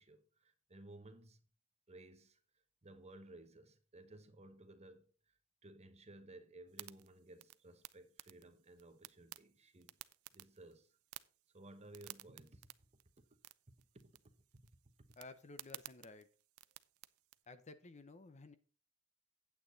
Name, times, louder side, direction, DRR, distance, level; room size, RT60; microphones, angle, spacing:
voice 1, 0.0-1.4 1.9-2.4 2.8-5.3 5.6-10.0 10.3-11.0 11.5-12.7 13.2-13.3 13.9-14.3 15.0-15.1, right 2 dB, 30° right, 1.0 m, -57 dB
sound 1, 6.7-17.4, right 16 dB, 85° right, 0.5 m, -57 dB
voice 2, 15.2-16.3 17.5-18.6, left 3 dB, 35° left, 0.7 m, -54 dB
8.8 x 8.3 x 4.0 m
head